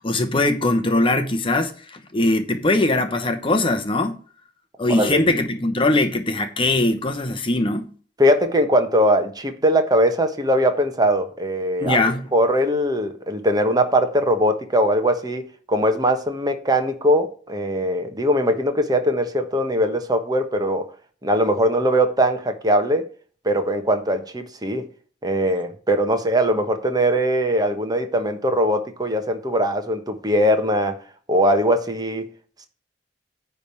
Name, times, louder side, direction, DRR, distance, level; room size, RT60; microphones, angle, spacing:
voice 1, 0.0-4.2 4.8-7.9 11.8-12.3, left 2 dB, 30° left, 0.9 m, -21 dB
voice 2, 8.2-12.0 12.3-20.9 21.2-23.1 23.4-24.9 25.2-31.0 31.3-32.3, equal, 25° right, 1.2 m, -21 dB
10.0 x 3.5 x 7.0 m
head